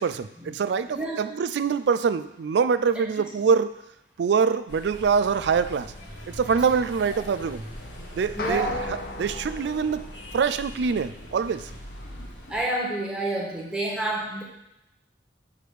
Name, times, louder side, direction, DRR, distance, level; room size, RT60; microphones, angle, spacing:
voice 1, 0.0-3.7 4.2-5.9 6.3-7.6 8.1-8.7 9.2-11.7, right 6 dB, 70° right, 13 dB, 0.3 m, -24 dB
voice 2, 0.9-1.2 1.5-1.6 2.9-3.0 6.5-6.6 8.3-8.7 12.1-14.4, right 1 dB, 5° right, -4 dB, 1.4 m, -29 dB
sound 1, 4.7-12.6, equal, 70° left, 1.7 m, -41 dB
sound 2, 8.4-10.9, left 2 dB, 55° left, 0.8 m, -36 dB
6.7 x 4.3 x 6.4 m, 0.87 s
head